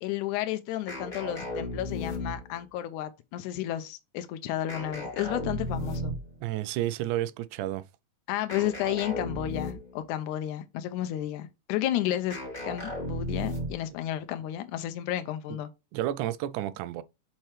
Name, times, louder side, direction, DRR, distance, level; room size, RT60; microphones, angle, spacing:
voice 1, 0.0-6.2 8.3-12.4 12.6-15.7, left 13 dB, 90° left, 2.1 m, -32 dB
sound 1, 0.9-2.6 4.7-6.3 8.5-10.0 12.3-13.9, left 1 dB, 15° left, 2.1 m, -35 dB
voice 2, 6.4-7.8 15.5-15.6 15.9-17.0, right 13 dB, 85° right, 2.0 m, -31 dB
7.3 x 4.4 x 3.2 m
omnidirectional pair, 3.4 m